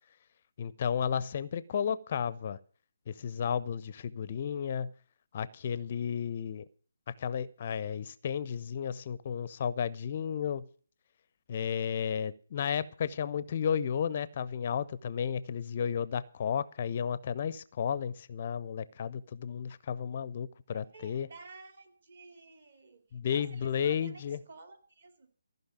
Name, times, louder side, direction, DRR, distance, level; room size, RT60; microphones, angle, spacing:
voice 1, 0.6-2.6 3.1-4.9 5.3-6.6 7.1-10.7 11.5-21.3 23.1-24.4, left 7 dB, 35° left, 0.5 m, -33 dB
voice 2, 20.7-23.0 23.3-25.3, right 3 dB, 50° right, 2.7 m, -52 dB
15.0 x 5.5 x 9.0 m
figure-of-eight pair, 145°, 0 cm